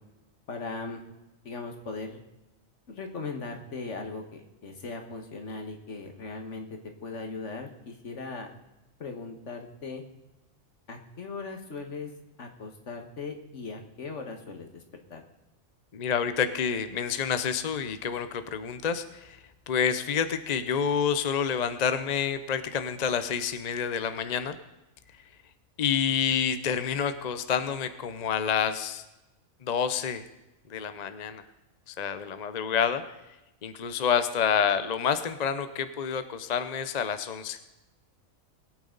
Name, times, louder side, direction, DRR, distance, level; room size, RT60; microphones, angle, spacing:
voice 1, 0.5-1.0 1.4-2.2 2.9-8.5 9.0-10.0 10.9-12.1 12.4-14.8 15.1-15.2, left 3 dB, 60° left, 4 dB, 1.8 m, -38 dB
voice 2, 15.9-19.4 19.7-24.6 25.8-29.0 29.6-30.2 30.7-31.4 31.9-33.0 33.6-37.7, left 7 dB, 45° left, 10 dB, 0.6 m, -28 dB
21.0 x 9.0 x 3.9 m, 0.99 s
omnidirectional pair, 1.4 m